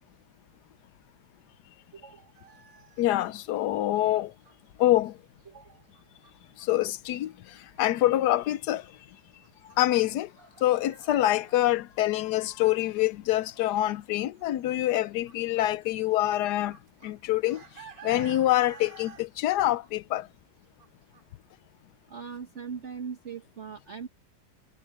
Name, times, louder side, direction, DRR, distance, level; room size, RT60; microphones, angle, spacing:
voice 1, 1.9-2.4 5.5-5.9 22.1-24.1, right 6 dB, 45° right, 1.4 m, -40 dB
sound 1, 2.3-12.0 12.3-21.2, right 7 dB, 80° right, 3.2 m, -54 dB
voice 2, 3.0-4.3 4.8-5.2 6.6-8.9 9.6-10.3 10.6-16.8 17.0-17.6 18.0-20.3, left 14 dB, 75° left, 1.1 m, -26 dB
omnidirectional pair, 1.9 m